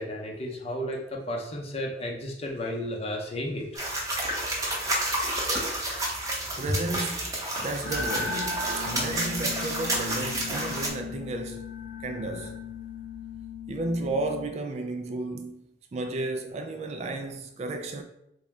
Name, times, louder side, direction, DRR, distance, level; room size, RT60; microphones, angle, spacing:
voice 1, 0.0-3.7, left 1 dB, 35° left, 0.6 m, -33 dB
sound 1, 3.7-10.9, right 1 dB, 20° right, 0.7 m, -30 dB
voice 2, 6.6-8.5 8.8-11.7 12.0-12.6 13.7-15.6 15.9-18.0, right 2 dB, 35° right, 0.3 m, -33 dB
sound 2, 7.8-14.5, left 4 dB, 80° left, 0.7 m, -36 dB
3.2 x 2.7 x 3.4 m
head